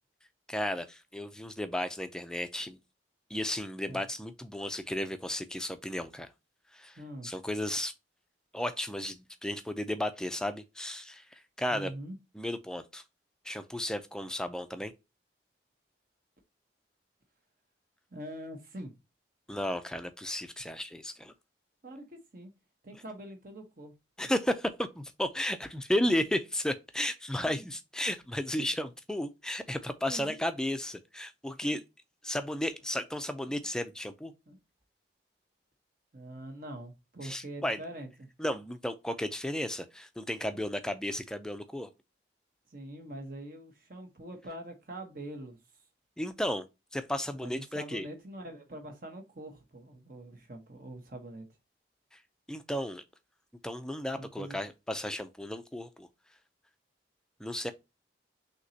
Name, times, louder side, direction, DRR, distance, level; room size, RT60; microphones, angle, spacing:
voice 1, 0.5-2.8 3.3-6.3 6.7-7.0 7.2-7.9 8.5-11.2 11.6-11.9 12.4-13.0 13.4-14.9 19.5-21.3 24.2-31.8 32.2-34.3 37.2-37.8 38.4-41.9 46.2-46.6 46.9-48.1 52.5-53.0 53.6-56.1 57.4-57.7, left 1 dB, 5° left, 0.5 m, -34 dB
voice 2, 7.0-7.3 11.7-12.2 18.1-18.9 21.8-22.5 22.8-23.9 24.2-24.3 27.4-27.7 28.6-28.7 30.1-30.4 33.5-33.7 34.5-34.6 36.1-38.3 42.7-45.6 47.4-51.4 54.2-54.6, right 1 dB, 50° right, 1.1 m, -44 dB
6.3 x 2.9 x 2.7 m
head